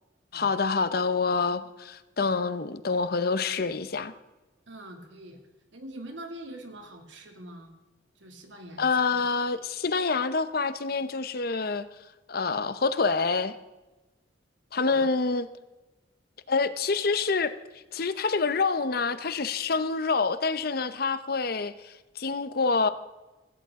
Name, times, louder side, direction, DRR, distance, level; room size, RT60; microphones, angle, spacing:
voice 1, 0.3-4.1 8.8-11.9 12.3-13.5 14.7-15.5 16.5-17.5 17.9-22.9, left 4 dB, 55° left, 12 dB, 0.8 m, -27 dB
voice 2, 4.7-5.4 5.7-7.7 8.2-9.2 14.9-15.1, right 1 dB, 90° right, 3 dB, 2.5 m, -44 dB
17.0 x 16.0 x 3.7 m, 1.1 s
head